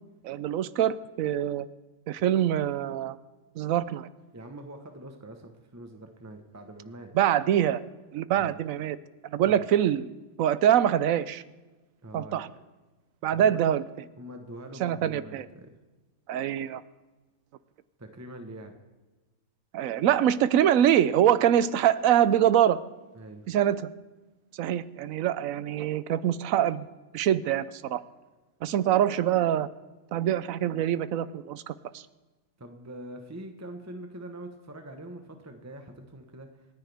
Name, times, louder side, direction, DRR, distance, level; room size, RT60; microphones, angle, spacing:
voice 1, 0.2-1.7 2.1-3.2 3.6-4.1 7.1-7.8 8.1-9.0 9.2-10.1 10.4-11.4 12.1-12.5 13.2-13.8 14.8-15.4 16.3-16.8 19.7-22.8 23.5-23.9 24.6-26.9 27.1-28.0 28.6-29.7 30.1-32.0, right 10 dB, 75° right, 16 dB, 1.1 m, -24 dB
voice 2, 4.3-7.1 8.4-8.6 9.5-9.6 12.0-12.6 13.3-13.6 14.2-15.7 18.0-18.8 23.1-23.4 32.6-36.7, right 1 dB, 15° right, 5 dB, 1.0 m, -44 dB
27.5 x 10.0 x 3.5 m, 1.2 s
omnidirectional pair, 1.5 m